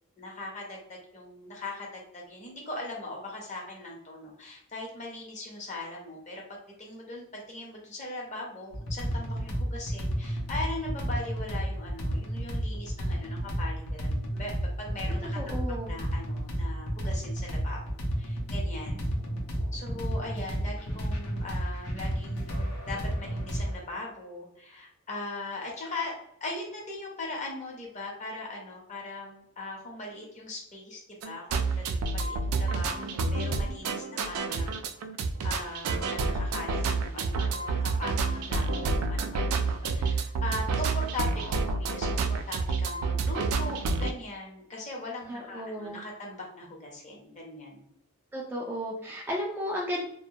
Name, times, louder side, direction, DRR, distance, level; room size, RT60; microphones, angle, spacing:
voice 1, 0.2-14.5 14.8-17.8 18.2-19.0 19.7-26.1 26.4-34.8 35.4-47.9, left 2 dB, 35° left, -1 dB, 0.8 m, -40 dB
sound 1, 8.7-23.8, equal, 80° left, 0.7 m, -31 dB
voice 2, 15.4-15.9 45.3-46.0 48.3-50.1, equal, 10° right, -2 dB, 0.3 m, -34 dB
sound 2, 31.2-44.1, right 3 dB, 85° right, 0.3 m, -29 dB
2.2 x 2.1 x 2.7 m, 0.72 s
head